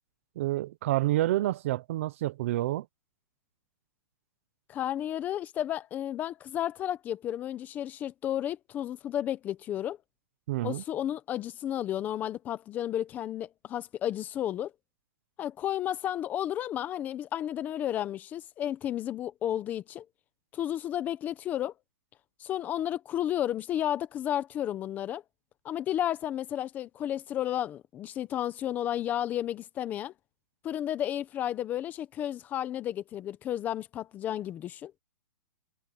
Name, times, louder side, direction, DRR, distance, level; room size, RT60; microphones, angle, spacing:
voice 1, 0.4-2.9 10.5-10.8, right 15 dB, 40° right, 0.8 m, -28 dB
voice 2, 4.7-10.0 10.6-14.7 15.4-20.0 20.5-21.7 22.4-25.2 25.6-30.1 30.6-34.9, left 11 dB, 15° left, 1.0 m, -32 dB
hypercardioid pair, 165°, 11 cm